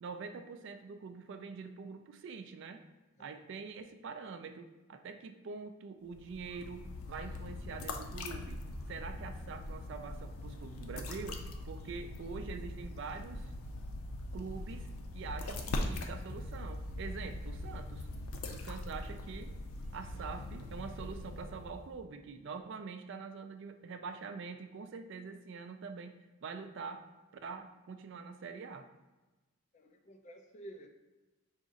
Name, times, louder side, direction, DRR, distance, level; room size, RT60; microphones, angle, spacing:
voice 1, 0.0-2.8 3.2-8.6 8.9-13.5 14.3-14.9 15.1-18.1 18.5-19.5 19.9-27.0 27.4-28.9, right 5 dB, 55° right, 8 dB, 0.3 m, -45 dB
sound 1, 6.1-22.0, left 1 dB, 90° left, 0.5 m, -41 dB
voice 2, 29.7-30.9, right 1 dB, 35° left, 4 dB, 0.4 m, -51 dB
4.9 x 2.5 x 3.8 m, 1.2 s
head